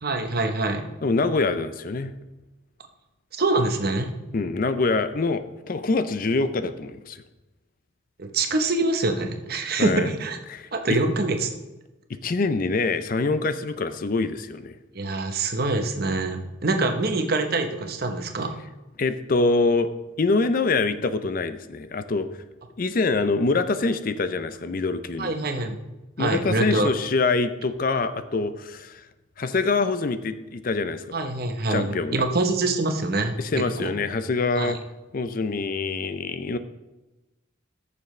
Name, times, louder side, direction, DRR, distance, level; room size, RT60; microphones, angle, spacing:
voice 1, 0.0-0.8 3.3-4.1 8.2-10.4 10.7-11.5 14.9-18.5 25.2-25.8 26.2-26.9 31.1-33.9 34.6-34.8, right 2 dB, 50° right, 6 dB, 1.0 m, -25 dB
voice 2, 1.0-2.1 4.3-7.2 9.8-10.1 10.5-10.7 12.2-14.7 19.0-19.9 20.2-22.3 22.8-25.3 26.2-29.0 29.4-31.0 31.7-32.2 33.4-34.8 35.1-36.6, left 3 dB, 45° left, 11 dB, 0.5 m, -25 dB
14.0 x 6.9 x 3.2 m, 1.1 s
head